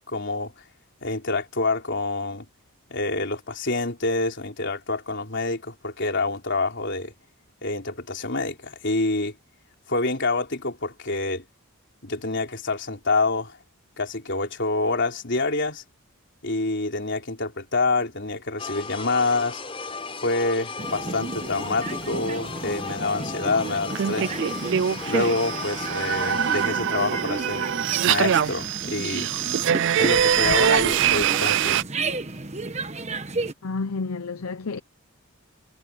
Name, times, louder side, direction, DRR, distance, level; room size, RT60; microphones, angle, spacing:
voice 1, 0.1-0.5 1.0-2.5 2.9-7.1 7.6-9.3 9.9-11.4 12.0-13.6 14.0-15.8 16.4-19.6 20.2-24.3 25.1-27.7 28.0-29.3 30.0-31.8, left 3 dB, 50° left, 4.0 m, -27 dB
sound 1, 18.6-26.7, left 4 dB, 25° left, 4.6 m, -35 dB
sound 2, 20.8-33.5, right 2 dB, 30° right, 1.2 m, -33 dB
sound 3, 23.9-31.8, right 9 dB, 55° right, 0.4 m, -23 dB
voice 2, 33.6-34.8, left 4 dB, 75° left, 0.7 m, -30 dB
head